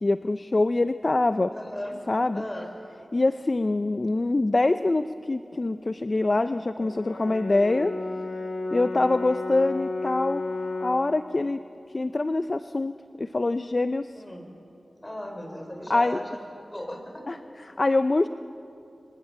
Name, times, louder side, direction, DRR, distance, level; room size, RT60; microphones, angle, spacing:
voice 1, 0.0-1.5 2.1-2.4 3.1-7.9 8.7-10.4 10.8-11.6 11.9-14.1 15.9-16.2 17.3-17.4 17.8-18.3, left 2 dB, 40° left, 11 dB, 0.6 m, -24 dB
voice 2, 1.5-2.1 2.3-2.7 14.1-14.5 15.0-17.4 17.8-17.9, left 1 dB, 20° left, 4 dB, 5.1 m, -37 dB
Brass instrument, 6.8-11.1, left 2 dB, 85° left, 2.6 m, -32 dB
26.0 x 25.0 x 7.6 m, 2.7 s
wide cardioid pair, 60°, 0 cm